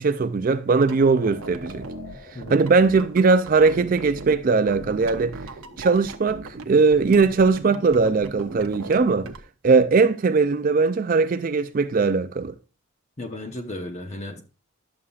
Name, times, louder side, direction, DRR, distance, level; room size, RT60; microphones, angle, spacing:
voice 1, 0.0-1.9 2.5-5.3 5.8-9.3 9.6-12.5, right 4 dB, 40° right, 0.4 m, -20 dB
sound 1, 0.7-4.4 4.7-6.7 6.9-9.4, right 3 dB, 75° right, 0.7 m, -39 dB
sound 2, 0.9-9.3, left 1 dB, 50° left, 2.6 m, -47 dB
voice 2, 13.2-14.4, left 1 dB, 30° left, 1.0 m, -34 dB
11.0 x 7.0 x 2.4 m
head